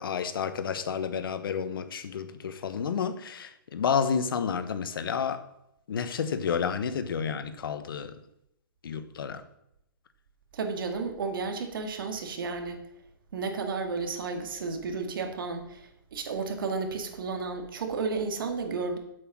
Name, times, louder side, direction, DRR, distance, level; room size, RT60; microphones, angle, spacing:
voice 1, 0.0-5.4 5.9-8.1 8.8-9.4, left 6 dB, 75° left, 1.1 m, -30 dB
voice 2, 10.5-12.8 13.3-19.0, right 4 dB, 70° right, 2.0 m, -32 dB
8.2 x 7.8 x 6.0 m
hypercardioid pair, 140°, 12 cm